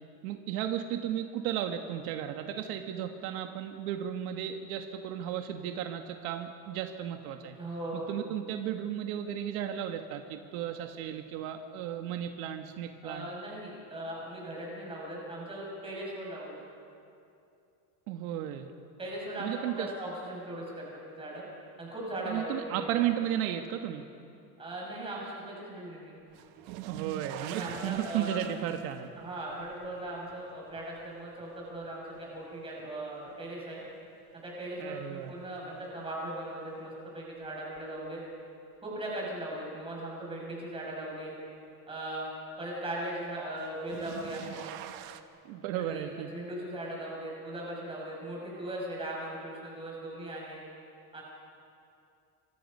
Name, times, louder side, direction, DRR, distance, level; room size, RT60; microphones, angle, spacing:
voice 1, 0.2-7.5 8.1-13.3 18.1-18.7 19.4-19.9 22.2-24.0 26.8-29.1 34.8-35.3 45.5-46.3, right 10 dB, 75° right, 5 dB, 1.6 m, -34 dB
voice 2, 7.6-8.1 13.0-16.6 19.0-21.4 21.8-23.0 24.6-26.2 27.4-28.3 29.2-33.8 34.3-38.2 38.8-41.3 41.9-42.3 42.6-44.8 45.8-50.6 51.1-51.2, right 1 dB, 15° right, -4 dB, 6.8 m, -39 dB
sound 1, 26.3-33.4 33.8-34.5 36.1-36.2 37.8-37.9 43.6-45.2, right 12 dB, 60° right, 1.2 m, -45 dB
26.0 x 25.0 x 5.5 m, 2.6 s
cardioid pair, 175°, 42 cm